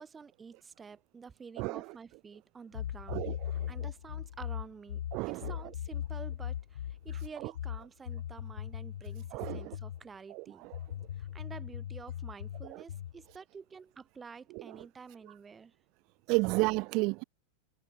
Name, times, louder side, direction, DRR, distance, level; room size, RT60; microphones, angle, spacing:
voice 1, 0.0-3.3 3.7-10.7 11.2-15.7, right 5 dB, 15° right, 3.3 m, -50 dB
sound 1, 2.7-10.0 10.7-13.2, left 11 dB, 60° left, 0.9 m, -39 dB
voice 2, 5.1-5.5 9.3-9.6 10.3-10.4 16.3-17.2, right 27 dB, 40° right, 0.9 m, -30 dB
figure-of-eight pair, 90°, 0 cm